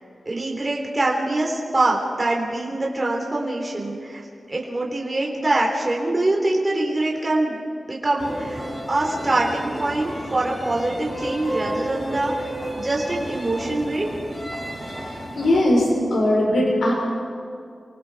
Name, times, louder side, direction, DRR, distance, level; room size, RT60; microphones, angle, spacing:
voice 1, 0.2-4.2 4.5-7.6 7.9-14.1, right 2 dB, 25° right, -2 dB, 3.3 m, -24 dB
sound 1, 8.2-15.6, right 1 dB, 15° left, 3.9 m, -32 dB
voice 2, 15.4-16.9, left 1 dB, 85° left, -2 dB, 5.1 m, -19 dB
28.5 x 23.0 x 4.7 m, 2.4 s
wide cardioid pair, 140°, 0 cm